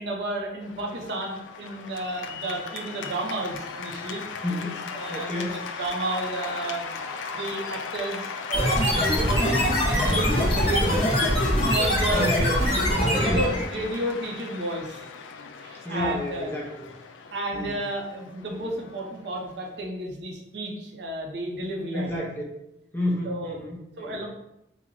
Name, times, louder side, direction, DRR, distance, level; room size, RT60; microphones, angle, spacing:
voice 1, 0.0-4.2 4.9-7.0 7.3-11.1 11.6-12.4 12.9-15.1 15.6-16.6 17.3-22.3 23.2-23.6 24.0-24.3, right 1 dB, 70° right, 0 dB, 0.6 m, -32 dB
Cheering / Applause, 0.6-19.9, left 5 dB, 90° left, 0.3 m, -37 dB
voice 2, 4.4-4.8 5.1-5.6 12.1-12.6 13.1-13.4 15.8-16.7 17.5-17.7 21.9-22.4 22.9-24.1, left 1 dB, 10° left, -3 dB, 0.5 m, -30 dB
sound 1, 8.5-13.7, equal, 30° left, 0.8 m, -23 dB
3.0 x 2.0 x 3.7 m, 0.83 s
head